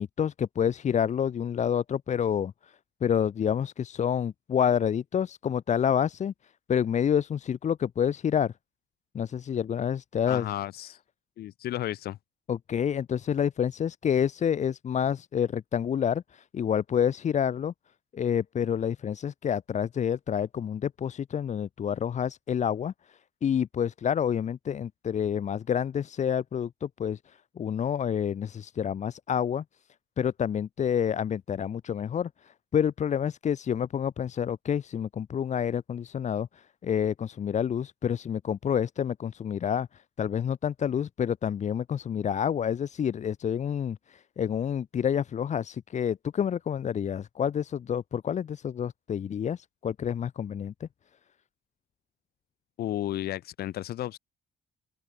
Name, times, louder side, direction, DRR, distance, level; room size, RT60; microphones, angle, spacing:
voice 1, 0.0-6.3 6.7-8.5 9.1-10.5 12.5-17.7 18.1-29.6 30.2-50.9, left 8 dB, 45° left, 2.0 m, -28 dB
voice 2, 10.3-11.0 11.4-12.2 52.8-54.2, left 13 dB, 65° left, 2.5 m, -33 dB
cardioid pair, 110°, 17 cm